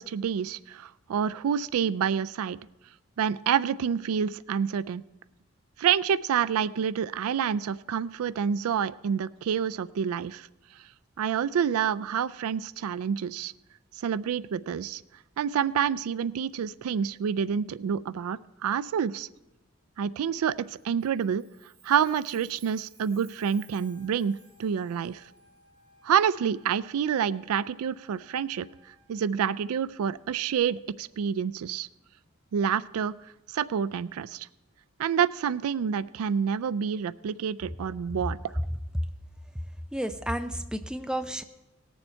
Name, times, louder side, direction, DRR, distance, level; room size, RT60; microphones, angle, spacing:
voice 1, 0.0-2.6 3.2-5.0 5.8-10.5 11.2-13.5 13.9-15.0 15.4-19.3 20.0-21.4 21.8-24.3 24.6-25.2 26.0-28.7 29.1-31.9 32.5-33.1 33.5-34.5 35.0-38.5, right 7 dB, 90° right, 19 dB, 0.3 m, -28 dB
Chime, 20.7-25.8, right 6 dB, 50° right, 1.7 m, -58 dB
Trumpet, 23.3-29.1, left 1 dB, 70° right, 4.1 m, -61 dB
voice 2, 39.9-41.4, equal, 5° right, 8 dB, 0.4 m, -31 dB
18.5 x 7.1 x 4.4 m, 0.98 s
head